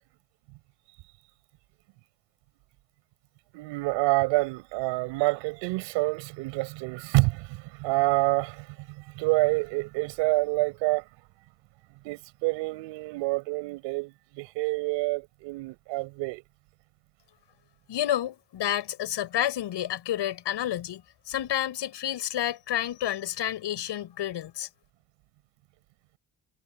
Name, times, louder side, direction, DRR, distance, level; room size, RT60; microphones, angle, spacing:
voice 1, 3.5-11.0 12.0-16.4, right 24 dB, 85° right, 5.0 m, -27 dB
voice 2, 17.9-24.7, left 11 dB, 70° left, 7.6 m, -30 dB
hypercardioid pair, 50°, 44 cm